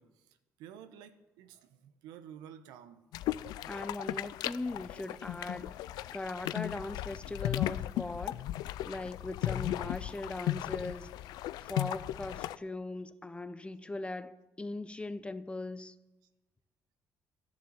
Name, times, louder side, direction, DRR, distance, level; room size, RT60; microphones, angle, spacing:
voice 1, 0.0-3.0, right 9 dB, 90° right, 1.0 m, -52 dB
sound 1, 3.1-12.6, left 14 dB, 80° left, 0.4 m, -36 dB
voice 2, 3.7-5.8 6.1-8.4 8.8-11.1 11.6-15.9, left 2 dB, 15° left, 0.8 m, -40 dB
12.0 x 11.0 x 7.2 m
supercardioid pair, 80°, 7 cm